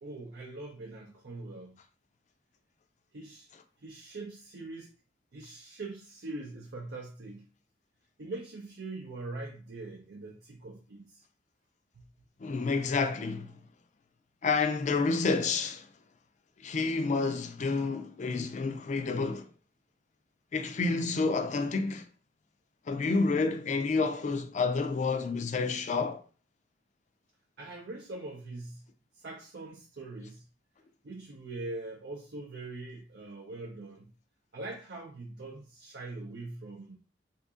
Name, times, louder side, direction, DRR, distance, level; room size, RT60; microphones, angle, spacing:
voice 1, 0.0-1.8 3.1-3.5 3.8-4.9 5.3-7.4 8.2-11.2 12.0-12.1 27.6-28.8 29.1-30.5 31.0-34.1 34.5-37.0, right 2 dB, 70° right, 0.6 m, -42 dB
voice 2, 12.4-13.5 14.4-15.9 16.6-19.5 20.5-22.1 22.9-26.2, left 4 dB, 45° left, 0.4 m, -29 dB
2.8 x 2.6 x 3.6 m
head